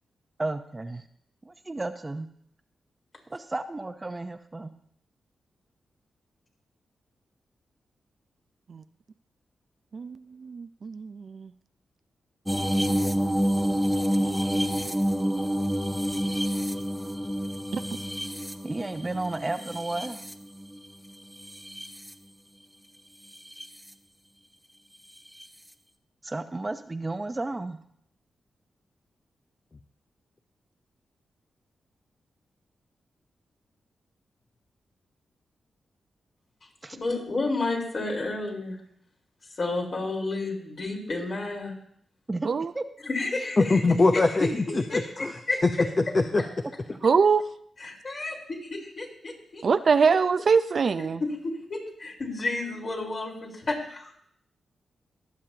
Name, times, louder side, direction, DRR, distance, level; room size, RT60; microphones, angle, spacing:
voice 1, 0.4-1.0 1.4-2.3 3.3-4.7 18.6-20.2 26.2-27.8 36.8-37.0 42.3-42.5 42.7-42.8, right 2 dB, 30° right, 8 dB, 0.9 m, -32 dB
voice 2, 9.9-11.5 17.7-17.8 42.4-42.7 47.0-47.4 49.6-51.2, right 5 dB, 60° right, 12 dB, 0.5 m, -23 dB
sound 1, 12.5-20.8 21.4-22.1 23.3-23.7 25.4-25.5, equal, ahead, 0.9 m, -28 dB
voice 3, 37.0-38.8 39.6-41.7 43.0-43.8 44.1-44.5 44.9-45.6 47.8-48.3 48.6-49.1 49.5-49.6 50.3-50.4 51.2-54.1, left 2 dB, 60° left, -2 dB, 4.2 m, -31 dB
voice 4, 43.6-45.7 46.0-46.4, left 3 dB, 40° left, 5 dB, 0.8 m, -23 dB
22.0 x 7.5 x 2.9 m, 0.69 s
supercardioid pair, 45°, 0 cm